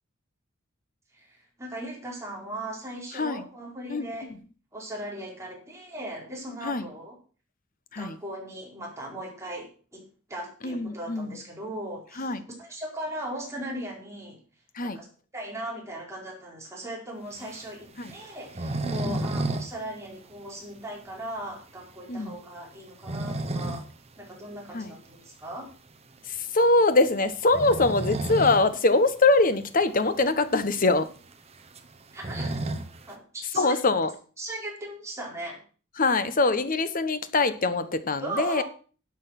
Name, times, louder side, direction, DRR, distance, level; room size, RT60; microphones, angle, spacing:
voice 1, 1.1-4.3 4.7-7.2 7.9-10.0 10.3-12.3 12.6-14.4 14.8-15.1 15.3-23.8 24.2-25.7 32.1-32.5 33.1-33.8 34.4-35.6 38.2-38.6, right 1 dB, 15° right, -2 dB, 4.8 m, -38 dB
voice 2, 3.1-3.4 3.9-4.1 6.6-6.9 7.9-8.2 10.6-11.4 12.2-12.4 14.7-15.0 18.0-18.1 18.8-19.2 22.1-22.4 24.7-24.9 26.3-31.1 33.5-34.1 36.0-38.6, left 3 dB, 40° left, 12 dB, 1.1 m, -23 dB
sound 1, 17.4-19.7 20.0-20.1 20.5-20.6 21.1-21.2 22.7-23.9 24.3-24.4 26.0-26.2 27.4-28.7 29.0-29.1 29.4-29.5 30.2-30.3 30.5-33.1, right 2 dB, 30° right, 1.2 m, -32 dB
12.0 x 8.1 x 5.9 m, 0.39 s
head